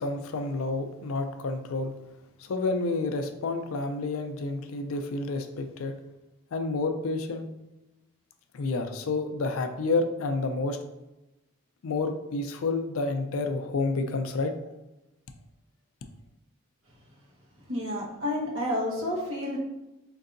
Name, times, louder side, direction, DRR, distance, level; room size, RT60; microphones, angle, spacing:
voice 1, 0.0-1.9 2.4-6.0 6.5-7.5 8.5-10.8 11.8-14.5, left 3 dB, 75° left, 7 dB, 0.4 m, -29 dB
voice 2, 17.7-19.6, left 1 dB, 65° right, -4 dB, 1.1 m, -30 dB
4.5 x 2.6 x 2.5 m, 0.97 s
head